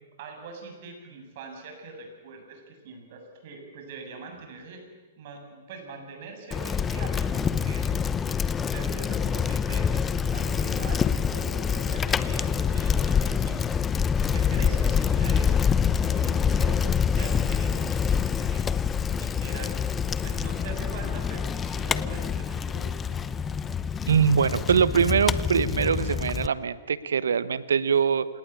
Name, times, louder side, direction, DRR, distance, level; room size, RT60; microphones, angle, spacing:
voice 1, 0.2-4.8 5.2-13.6 14.2-15.7 16.0-16.8 17.1-18.6 19.2-23.2, right 3 dB, 55° right, 3 dB, 7.9 m, -42 dB
Bicycle, 6.5-26.5, left 7 dB, 20° left, 0.8 m, -26 dB
voice 2, 24.1-28.3, right 7 dB, 80° right, 16 dB, 1.1 m, -23 dB
28.0 x 18.5 x 8.4 m, 1.3 s
hypercardioid pair, 115°, 0 cm